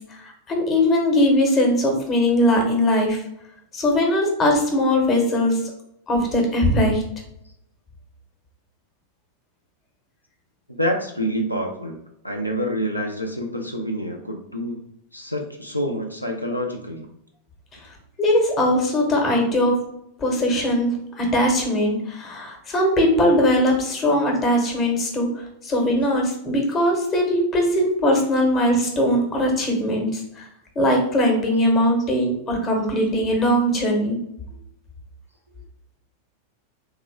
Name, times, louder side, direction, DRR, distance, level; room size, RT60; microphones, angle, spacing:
voice 1, 0.1-3.2 3.7-5.6 6.1-7.0 18.2-19.8 20.2-30.5 30.7-34.2, left 1 dB, 30° left, 1 dB, 1.1 m, -20 dB
voice 2, 10.7-12.0 12.2-14.8 15.1-17.1, equal, 90° left, 2 dB, 0.4 m, -27 dB
3.2 x 2.9 x 3.5 m, 0.79 s
figure-of-eight pair, 90°, 0 cm